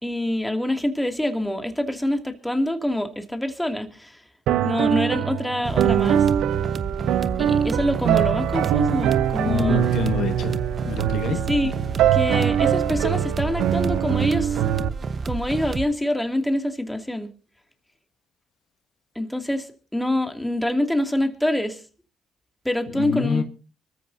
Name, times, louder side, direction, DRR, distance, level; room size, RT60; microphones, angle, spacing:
voice 1, 0.0-4.2 4.6-6.3 7.4-9.8 11.5-11.7 12.1-14.6 15.2-17.3 19.1-21.8 22.6-23.4, left 1 dB, 5° left, 2.6 m, -25 dB
sound 1, 4.5-14.9, right 10 dB, 80° right, 0.6 m, -23 dB
sound 2, 5.6-15.9, right 5 dB, 50° right, 1.0 m, -30 dB
voice 2, 9.4-11.4 22.9-23.4, left 7 dB, 75° left, 1.3 m, -27 dB
24.5 x 14.0 x 2.8 m
supercardioid pair, 50°, 0 cm